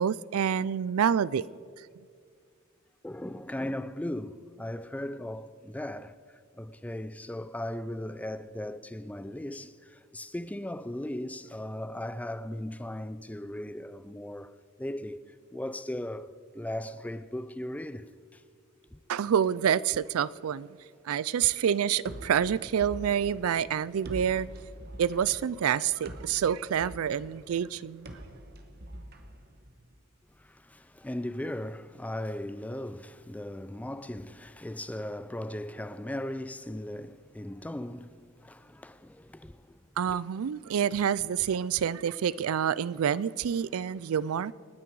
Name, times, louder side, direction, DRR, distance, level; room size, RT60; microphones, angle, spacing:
voice 1, 0.0-1.4 19.1-20.7 21.0-24.5 25.0-28.1 40.0-44.5, right 8 dB, 80° right, 0.4 m, -27 dB
voice 2, 3.0-15.2 15.5-18.4 18.9-19.0 30.3-39.8 40.1-40.2, left 1 dB, 5° left, 0.4 m, -38 dB
sound 1, 22.0-30.0, right 1 dB, 50° right, 1.3 m, -45 dB
28.0 x 9.8 x 4.7 m
head